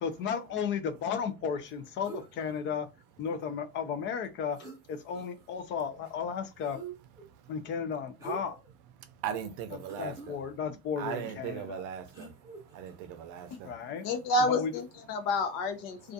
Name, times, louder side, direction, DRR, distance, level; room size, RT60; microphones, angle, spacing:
voice 1, 0.0-2.9 3.2-4.6 4.9-6.8 7.5-8.6 10.0-11.9 13.6-14.1 14.5-14.7, left 7 dB, 40° left, 0.4 m, -34 dB
sound 1, 2.0-2.6 4.2-4.3 4.5-5.5 6.6-7.3 8.2-8.7 9.2-9.3 9.8-10.3 12.1-13.0 14.0-14.2, right 4 dB, 10° right, 0.6 m, -45 dB
voice 2, 9.2-10.4 11.0-12.3 12.7-13.7, right 9 dB, 75° right, 0.5 m, -38 dB
voice 3, 14.0-16.1, left 2 dB, 85° left, 0.7 m, -29 dB
2.4 x 2.3 x 2.6 m
cardioid pair, 170°, 31 cm